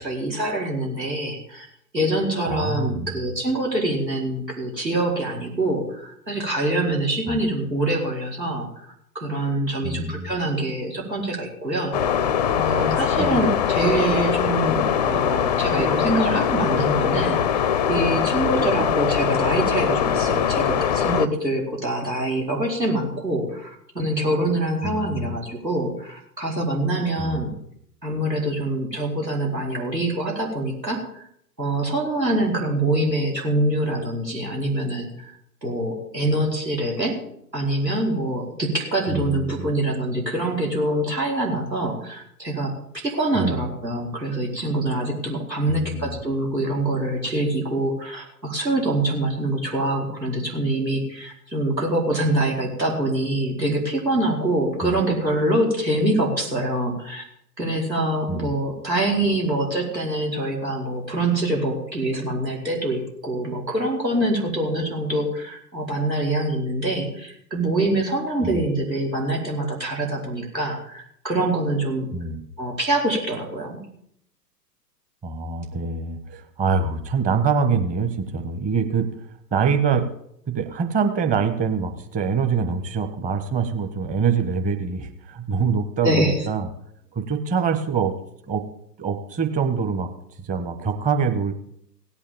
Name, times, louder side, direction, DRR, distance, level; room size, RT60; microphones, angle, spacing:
voice 1, 0.0-1.7 1.9-12.2 12.5-27.5 28.0-31.2 31.6-35.3 35.6-37.2 37.5-57.2 57.6-72.1 72.6-73.8 86.0-86.4, right 1 dB, 90° right, -1 dB, 4.8 m, -25 dB
voice 2, 2.5-3.2 7.3-7.4 9.8-10.3 13.2-13.5 24.8-25.4 27.2-27.5 39.1-39.7 43.3-43.7 45.7-46.2 54.8-55.0 58.3-58.5 68.4-68.6 72.1-72.4 75.2-79.1 79.5-80.0 80.5-86.7 87.1-88.1 88.5-88.7 89.0-90.1 90.4-91.5, right 5 dB, 15° right, 6 dB, 1.2 m, -25 dB
sound 1, 11.9-21.3, left 8 dB, 25° left, 0.5 m, -22 dB
17.0 x 8.7 x 7.3 m, 0.71 s
figure-of-eight pair, 110°, 49 cm